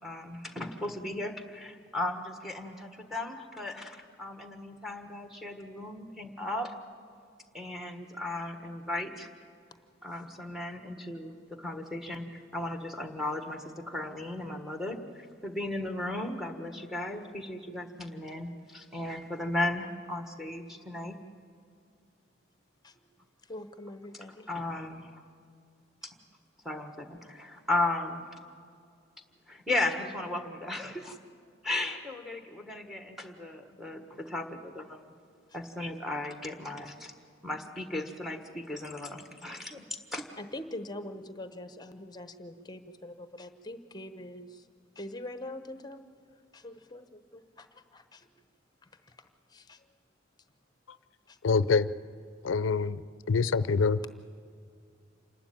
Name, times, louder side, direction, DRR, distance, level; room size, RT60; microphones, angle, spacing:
voice 1, 0.0-6.7 7.5-9.3 10.0-21.2 24.5-25.2 26.6-28.4 29.5-31.2 31.6-35.1 35.5-37.1 37.4-39.9 40.1-40.3, left 2 dB, ahead, 6 dB, 1.5 m, -36 dB
voice 2, 22.8-24.5 26.0-26.1 40.4-44.7 44.9-46.0 46.5-48.3 48.8-49.9 51.3-51.4, left 1 dB, 20° left, 10 dB, 0.9 m, -44 dB
voice 3, 51.4-51.9 52.4-53.0 53.3-54.0, left 4 dB, 90° left, 16 dB, 0.5 m, -25 dB
27.0 x 12.0 x 9.2 m, 2.3 s
head